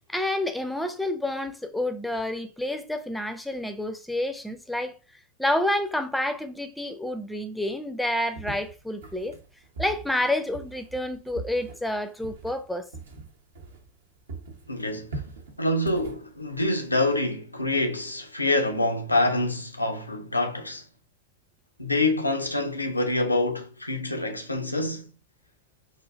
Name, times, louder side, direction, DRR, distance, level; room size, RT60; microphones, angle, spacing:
voice 1, 0.1-4.9 5.4-9.3 9.8-12.9, left 1 dB, 5° left, 0.5 m, -29 dB
sound 1, 8.3-14.0 14.3-17.2, right 3 dB, 65° right, 0.8 m, -41 dB
voice 2, 14.7-15.1 15.6-20.8 21.8-25.1, left 2 dB, 85° left, 0.6 m, -26 dB
4.2 x 2.5 x 2.4 m
figure-of-eight pair, 90°, 0 cm